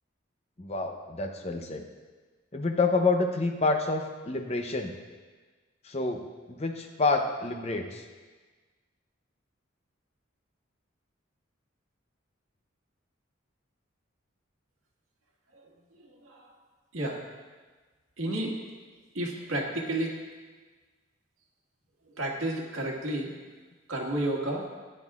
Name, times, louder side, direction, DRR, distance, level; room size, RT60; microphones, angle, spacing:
voice 1, 0.6-1.9 2.5-4.9 5.8-6.2 6.5-8.1, left 3 dB, 30° left, 5 dB, 0.7 m, -28 dB
voice 2, 16.0-16.5 16.9-17.2 18.2-18.6 19.1-20.1 22.1-23.3 23.9-24.7, right 1 dB, 85° right, -1 dB, 1.8 m, -31 dB
14.5 x 10.0 x 2.4 m, 1.4 s
head